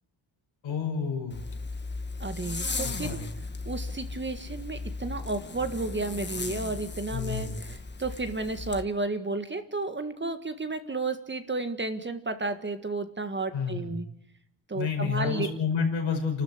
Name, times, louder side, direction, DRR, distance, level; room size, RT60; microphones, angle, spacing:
voice 1, 0.6-1.4 2.8-3.3 7.1-7.6 13.5-14.0 14.7-16.4, left 6 dB, 85° left, 3 dB, 5.5 m, -30 dB
Zipper (clothing), 1.3-8.8, left 3 dB, 25° left, 1.4 m, -36 dB
voice 2, 2.2-3.2 3.6-14.0 14.7-15.5, right 3 dB, 25° right, 9 dB, 1.7 m, -32 dB
29.0 x 13.0 x 8.1 m, 0.73 s
cardioid pair, 110°, 45 cm